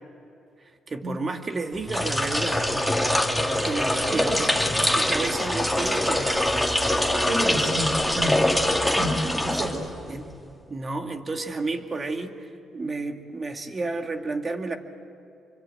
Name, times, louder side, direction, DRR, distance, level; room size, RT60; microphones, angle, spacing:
voice 1, 0.9-2.7 3.6-6.7 10.1-10.3 10.7-14.8, right 3 dB, 35° right, 5 dB, 2.2 m, -31 dB
sound 1, 1.8-10.2, left 1 dB, ahead, 2.6 m, -24 dB
voice 2, 4.1-4.7 7.3-8.4 8.9-9.2 9.4-9.7, equal, 50° right, 2 dB, 4.2 m, -29 dB
26.0 x 24.5 x 7.9 m, 2.7 s
cardioid pair, 90°, 0 cm